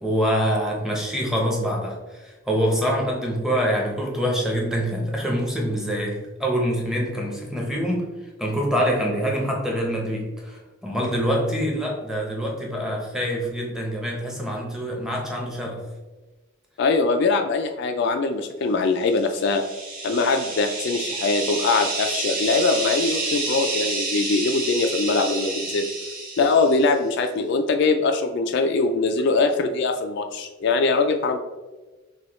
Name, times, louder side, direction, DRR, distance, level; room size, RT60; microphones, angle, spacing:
voice 1, 0.0-8.1 8.4-15.8, equal, 5° right, -2 dB, 0.8 m, -25 dB
voice 2, 16.8-19.6 20.0-25.9 26.4-31.4, left 3 dB, 60° left, 6 dB, 0.3 m, -22 dB
sound 1, 19.1-26.9, right 3 dB, 45° right, 0.9 m, -29 dB
6.0 x 2.3 x 3.0 m, 1.2 s
head